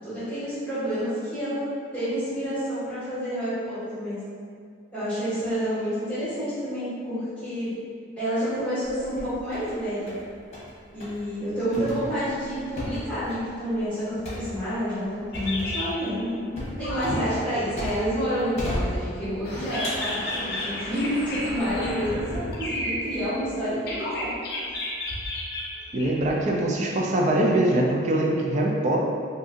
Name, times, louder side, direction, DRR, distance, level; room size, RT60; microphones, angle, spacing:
voice 1, 0.0-1.6 1.9-4.2 4.9-7.7 8.2-10.1 10.9-24.3, equal, 10° left, -16 dB, 1.3 m, -29 dB
sound 1, 8.8-9.7 10.1-10.7 11.0-11.2 11.7-18.2 18.6-19.4 19.8-20.8 21.3-21.7, equal, 35° left, 0.9 m, -35 dB
sound 2, 15.3-16.2 16.8-17.4 18.4-18.5 19.4-23.6 23.9-26.4, left 1 dB, 50° left, 0.5 m, -32 dB
voice 2, 25.9-29.0, right 1 dB, 35° right, -1 dB, 0.4 m, -23 dB
2.6 x 2.5 x 3.6 m, 2.1 s
head